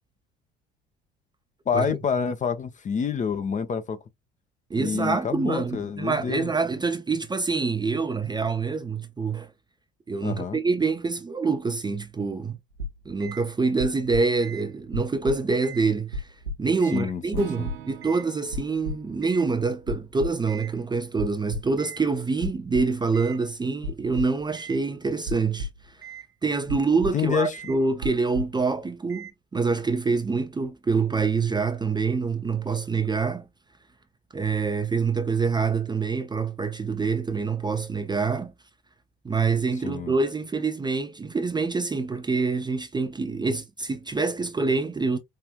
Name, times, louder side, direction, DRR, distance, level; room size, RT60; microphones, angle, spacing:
voice 1, 1.7-4.0 4.7-6.5 10.2-10.6 16.9-17.7 27.1-27.6 39.8-40.1, left 6 dB, 25° left, 0.6 m, -28 dB
voice 2, 4.7-9.5 10.1-12.6 13.1-16.3 16.6-25.7 26.4-33.4 34.3-38.5 39.2-45.2, right 4 dB, 15° right, 0.5 m, -26 dB
Heart Failure, 12.8-13.4 13.8-14.6 14.9-15.8 16.1-17.0 17.3-18.3 18.5-19.4 19.9-20.7 21.2-22.0 22.4-23.4 23.8-24.8 25.3-26.2 26.7-27.3 27.5-27.8 28.0-28.6 29.1-29.3, equal, 85° right, 1.0 m, -34 dB
Acoustic guitar / Strum, 17.3-21.4, right 11 dB, 60° right, 0.9 m, -46 dB
4.9 x 2.5 x 2.2 m
figure-of-eight pair, 60°, 30 cm